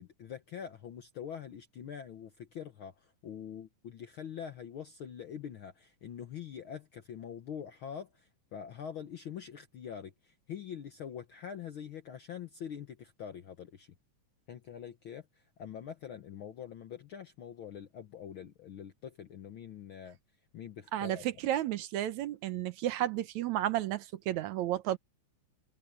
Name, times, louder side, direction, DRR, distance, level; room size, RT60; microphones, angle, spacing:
voice 1, 0.0-14.0 14.5-21.2, left 8 dB, 65° left, 1.3 m, -44 dB
voice 2, 21.4-25.0, right 13 dB, 70° right, 2.1 m, -32 dB
omnidirectional pair, 3.5 m